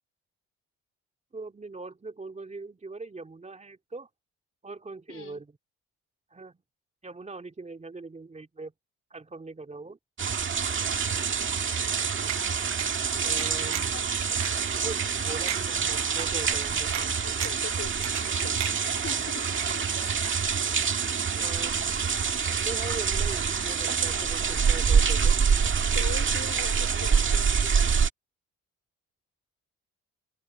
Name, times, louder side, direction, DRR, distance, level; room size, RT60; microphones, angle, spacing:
voice 1, 1.3-4.1 4.6-5.5 6.3-6.6 7.0-8.7 9.1-10.0 13.2-13.9 14.8-16.9 21.4-22.2 22.6-25.4, right 3 dB, 25° right, 2.9 m, -41 dB
voice 2, 5.1-5.4 11.5-12.0 13.9-14.1 17.2-19.9 25.8-27.8, left 7 dB, 50° left, 4.5 m, -43 dB
sound 1, 10.2-28.1, right 6 dB, 40° right, 1.9 m, -26 dB
sound 2, 12.3-12.4 12.8-12.9 13.4-14.0 14.4-14.5 15.0-15.1 15.5-15.6 16.2-16.3 16.9-17.1 17.4-17.7 18.0-18.3 18.6-19.2 19.5-20.0 20.2-20.3, right 12 dB, 65° right, 0.9 m, -34 dB
cardioid pair, 90°, 30 cm